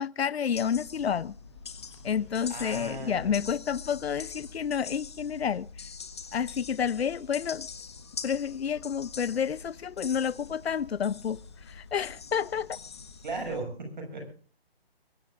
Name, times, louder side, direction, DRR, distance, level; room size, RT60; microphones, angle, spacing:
voice 1, 0.0-1.3 2.0-5.7 6.3-7.7 8.2-12.8, left 7 dB, 85° left, 0.6 m, -30 dB
sound 1, 0.5-13.6, left 5 dB, 25° left, 1.5 m, -44 dB
voice 2, 2.1-3.4 13.2-14.3, right 2 dB, 50° right, 6.7 m, -37 dB
22.5 x 19.5 x 2.5 m
hypercardioid pair, 175°, 30 cm